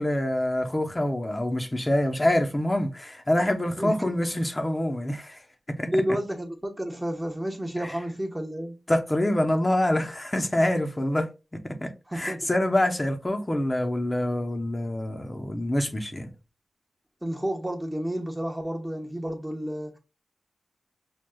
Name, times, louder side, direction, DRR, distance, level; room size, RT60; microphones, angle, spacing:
voice 1, 0.0-5.4 5.8-5.9 7.8-7.9 8.9-11.3 11.6-16.3, left 1 dB, 25° left, 0.8 m, -26 dB
voice 2, 3.8-4.3 5.9-8.8 12.1-12.4 17.2-20.0, equal, 10° right, 1.1 m, -30 dB
6.1 x 2.3 x 2.3 m
cardioid pair, 65°, 0 cm